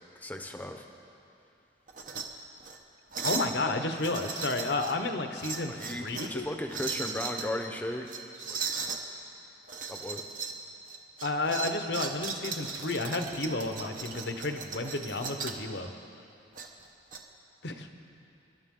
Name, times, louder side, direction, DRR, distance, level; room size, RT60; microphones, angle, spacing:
voice 1, 0.2-0.8 5.7-8.1 8.4-8.7 9.9-10.2, left 1 dB, 10° left, 4 dB, 0.8 m, -36 dB
sound 1, 1.9-2.3 2.6-2.8 3.1-3.5 4.0-5.0 5.4-6.4 6.7-7.5 8.1-9.0 9.7-10.6 10.9-15.6 16.6-17.2, right 5 dB, 45° right, 1.0 m, -37 dB
voice 2, 3.2-6.5 11.2-15.9 17.6-17.9, left 2 dB, 70° left, 6 dB, 1.0 m, -31 dB
26.5 x 12.0 x 3.8 m, 2.6 s
head